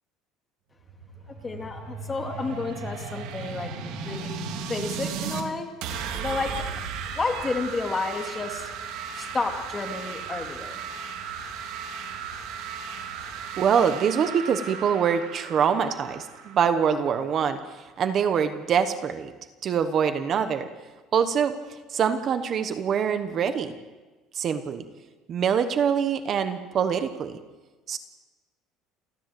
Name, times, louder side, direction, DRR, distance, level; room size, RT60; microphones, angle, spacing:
sound 1, 0.8-5.4 5.8-17.4, right 6 dB, 75° right, 3.0 m, -36 dB
voice 1, 1.4-3.7 4.0-4.3 4.7-5.7 6.2-6.7 7.2-8.7 9.1-10.8, left 3 dB, 20° left, 3 dB, 2.3 m, -31 dB
voice 2, 13.6-19.3 19.6-20.7 21.1-23.7 24.3-24.8 25.3-27.4 27.9-28.0, right 7 dB, 35° right, 9 dB, 1.1 m, -24 dB
29.0 x 13.5 x 7.9 m, 1.3 s
cardioid pair, 160°, 0 cm